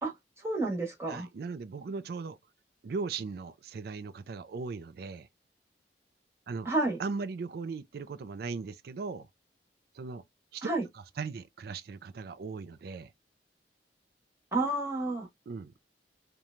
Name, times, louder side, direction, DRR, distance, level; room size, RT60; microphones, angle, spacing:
voice 1, 0.4-1.3 6.6-7.0 10.6-10.8 14.5-15.3, right 2 dB, 15° right, 1.1 m, -30 dB
voice 2, 1.1-2.4 2.8-5.3 6.5-6.7 7.0-9.3 9.9-10.2 10.5-10.7 11.2-13.1 15.5-15.8, right 4 dB, 60° right, 0.3 m, -38 dB
3.0 x 2.2 x 2.4 m
head